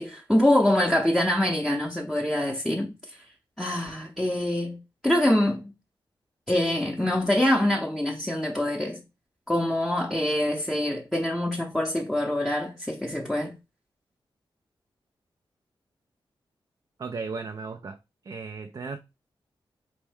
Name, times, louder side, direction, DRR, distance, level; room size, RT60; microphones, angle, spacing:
voice 1, 0.0-3.2 3.6-5.7 6.5-9.0 9.5-13.5, left 1 dB, 5° left, 0.7 m, -25 dB
voice 2, 17.0-18.0 18.2-19.0, right 4 dB, 45° right, 0.4 m, -35 dB
4.4 x 3.1 x 3.4 m
wide cardioid pair, 110°, 9 cm